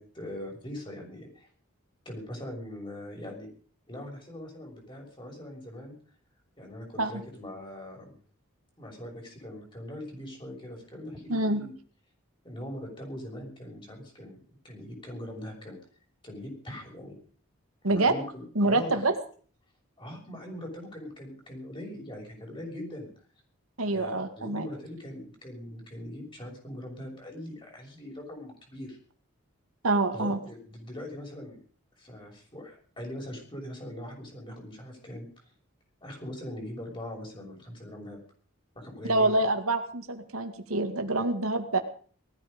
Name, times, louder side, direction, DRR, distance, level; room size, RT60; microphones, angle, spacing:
voice 1, 0.0-1.5 2.0-3.5 3.9-5.9 6.6-8.2 8.8-11.7 12.4-14.4 14.6-15.8 16.2-17.2 17.9-19.0 20.0-23.1 23.8-29.0 30.1-31.6 32.0-35.3 36.0-38.2 38.7-39.3, left 1 dB, 25° left, 1 dB, 6.4 m, -41 dB
voice 2, 11.3-11.6 17.8-18.1 18.6-19.1 23.8-24.7 29.8-30.4 39.0-41.8, right 2 dB, 90° right, 7 dB, 2.2 m, -26 dB
19.5 x 14.0 x 5.2 m, 0.44 s
head